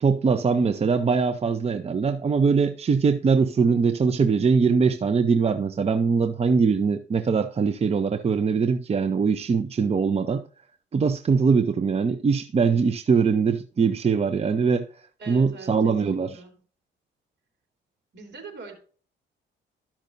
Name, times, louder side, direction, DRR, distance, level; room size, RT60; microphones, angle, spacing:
voice 1, 0.0-10.4 10.9-14.9 15.3-16.3, right 5 dB, 30° right, 0.6 m, -22 dB
voice 2, 15.2-16.5 18.1-18.7, right 4 dB, 60° right, 3.2 m, -42 dB
13.5 x 5.8 x 2.6 m
cardioid pair, 90°, 20 cm